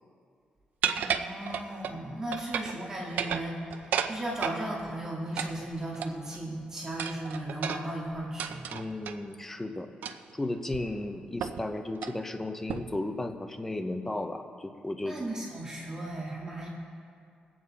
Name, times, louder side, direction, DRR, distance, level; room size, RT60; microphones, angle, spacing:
sound 1, 0.8-2.0 2.3-2.8 3.1-4.6 5.4-6.4 7.0-9.2 10.0-10.3 10.7-10.8 11.4-11.7 11.9-12.2 12.7-13.0, right 8 dB, 80° right, 0.6 m, -33 dB
voice 1, 1.0-8.6 15.0-16.7, right 1 dB, 20° right, -4 dB, 1.9 m, -36 dB
voice 2, 8.7-9.9 10.3-15.2, left 2 dB, 10° left, 6 dB, 0.7 m, -34 dB
21.5 x 8.7 x 4.2 m, 2.4 s
wide cardioid pair, 165°, 3 cm